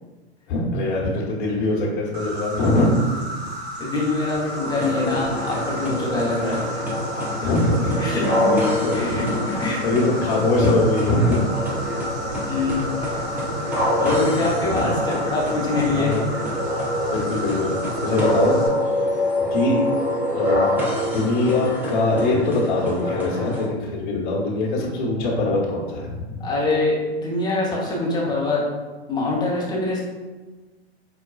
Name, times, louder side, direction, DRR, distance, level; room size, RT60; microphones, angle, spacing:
voice 1, 0.5-2.9 6.4-6.6 7.4-8.2 8.4-11.4 13.1-13.4 14.4-14.9 15.9-16.3 17.0-18.6 19.5-20.0 20.3-20.7 21.1-26.4, left 2 dB, 45° left, -4 dB, 1.0 m, -23 dB
Insect, 2.1-18.7, right 1 dB, 75° right, 1.0 m, -33 dB
voice 2, 3.8-6.7 8.0-9.8 12.4-13.2 13.7-16.2 26.4-28.6 29.1-30.0, left 2 dB, 15° left, -4 dB, 0.7 m, -24 dB
sound 1, 4.6-23.7, left 1 dB, 5° right, 0.4 m, -26 dB
4.8 x 2.2 x 2.3 m, 1.3 s
hypercardioid pair, 115°, 32 cm